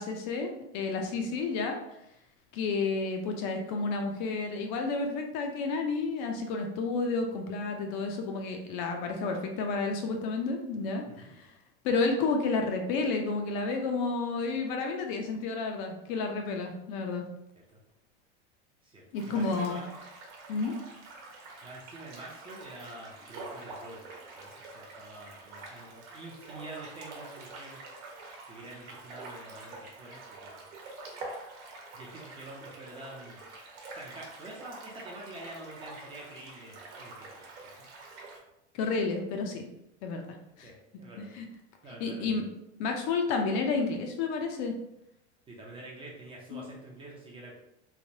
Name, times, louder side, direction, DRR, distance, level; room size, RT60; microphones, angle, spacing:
voice 1, 0.0-1.8 2.5-11.5 11.8-17.3 19.1-19.8 20.5-20.8 38.7-39.6 40.0-40.2 40.6-40.7 41.2-41.5 42.0-42.4 42.8-44.8 46.5-46.7, left 4 dB, 45° left, 3 dB, 0.4 m, -31 dB
voice 2, 18.8-19.9 21.6-27.8 28.5-30.6 31.9-33.4 33.7-37.9 40.6-41.3 41.8-42.4 45.5-47.6, right 2 dB, 15° right, -3 dB, 0.4 m, -47 dB
sound 1, 19.1-38.4, right 2 dB, 80° right, 1.0 m, -46 dB
3.2 x 2.1 x 2.6 m, 0.83 s
supercardioid pair, 140°, 35 cm